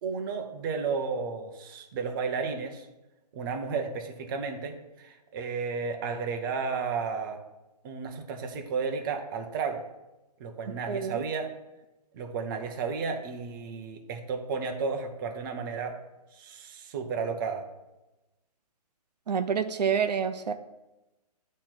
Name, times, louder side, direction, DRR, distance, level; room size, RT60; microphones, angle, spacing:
voice 1, 0.0-2.9 3.3-7.4 7.8-9.8 10.4-11.5 12.1-16.0 16.3-17.6, right 5 dB, 30° right, 4 dB, 0.7 m, -33 dB
voice 2, 10.9-11.2 19.3-20.5, right 7 dB, 80° right, 9 dB, 0.5 m, -28 dB
8.5 x 3.1 x 5.9 m, 1.0 s
hypercardioid pair, 150°, 21 cm